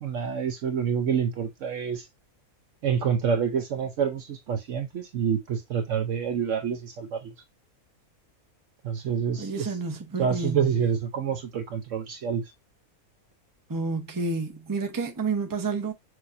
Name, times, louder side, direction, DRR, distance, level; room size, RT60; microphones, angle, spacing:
voice 1, 0.0-2.1 2.8-7.3 8.8-9.7 10.2-12.4, right 7 dB, 65° right, 0.9 m, -27 dB
voice 2, 9.3-10.7 13.7-15.9, right 4 dB, 20° right, 0.7 m, -30 dB
6.2 x 2.8 x 2.6 m
omnidirectional pair, 1.5 m